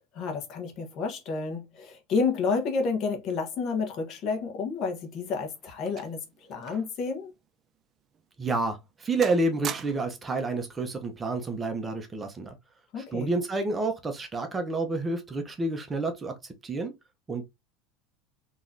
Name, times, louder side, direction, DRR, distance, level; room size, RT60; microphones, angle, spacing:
voice 1, 0.0-7.3 12.9-13.3, left 4 dB, 45° left, 1.1 m, -30 dB
sound 1, 4.9-7.0 7.3-7.5 8.1-8.3 8.7-9.0 9.2-10.3 11.3-11.5, right 9 dB, 35° right, 0.3 m, -41 dB
voice 2, 8.4-12.5 13.0-16.9 17.3-17.4, right 3 dB, 20° right, 0.7 m, -29 dB
3.7 x 3.0 x 2.6 m
supercardioid pair, 125°, 0 cm